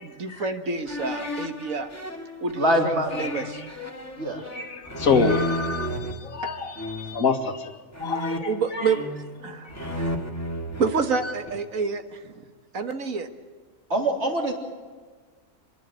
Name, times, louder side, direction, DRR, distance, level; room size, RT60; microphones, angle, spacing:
voice 1, 0.0-1.9 2.4-3.6 5.3-5.4 6.4-6.5 8.5-10.1 10.8-12.4 12.7-13.3, right 5 dB, 75° right, 7 dB, 1.9 m, -29 dB
sound 1, 0.9-6.1 6.8-7.3 7.9-9.4 9.7-11.7, equal, 10° left, 2.2 m, -33 dB
voice 2, 2.6-3.5 4.2-4.4 13.9-14.5, right 1 dB, 55° right, 1 dB, 3.8 m, -24 dB
voice 3, 4.5-7.7 8.0-8.9 9.8-9.9 11.2-11.3, left 4 dB, 80° left, 6 dB, 2.2 m, -27 dB
27.5 x 11.5 x 9.1 m, 1.5 s
omnidirectional pair, 1.4 m